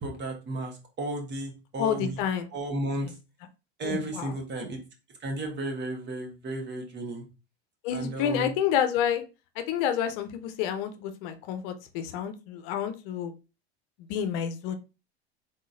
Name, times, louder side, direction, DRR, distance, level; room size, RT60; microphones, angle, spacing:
voice 1, 0.0-2.2 2.5-3.1 3.8-4.8 5.2-7.2 7.9-8.5, right 2 dB, 35° right, 2 dB, 1.3 m, -33 dB
voice 2, 1.8-2.5 3.0-3.1 3.8-4.3 7.8-9.2 9.6-13.3 14.1-14.7, left 9 dB, 55° left, 9 dB, 0.7 m, -29 dB
3.8 x 3.7 x 2.5 m, 0.29 s
hypercardioid pair, 95°, 32 cm